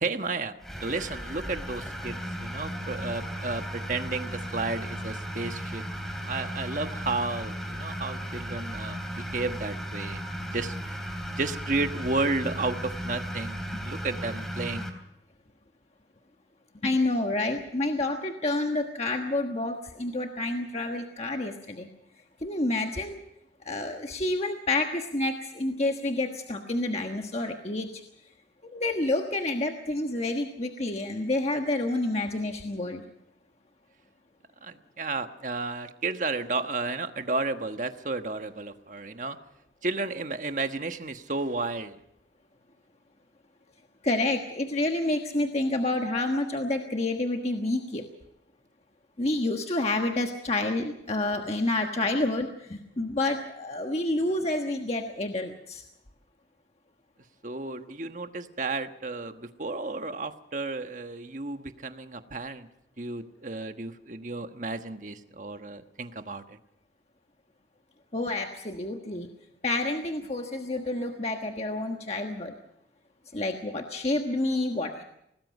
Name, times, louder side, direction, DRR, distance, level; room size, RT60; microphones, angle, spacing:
voice 1, 0.0-5.8 6.3-11.1 11.3-14.9 34.6-39.4 39.8-42.0 57.4-62.7 63.0-66.6, right 3 dB, 45° right, 7 dB, 1.3 m, -32 dB
sound 1, 0.6-14.9, equal, ahead, 3.0 m, -35 dB
voice 2, 16.8-21.9 22.4-23.2 23.6-28.0 28.7-33.0 44.0-48.0 49.2-55.8 68.1-69.3 69.6-72.5 73.3-75.0, left 2 dB, 35° left, 3 dB, 1.4 m, -29 dB
25.0 x 19.0 x 5.4 m, 0.79 s
head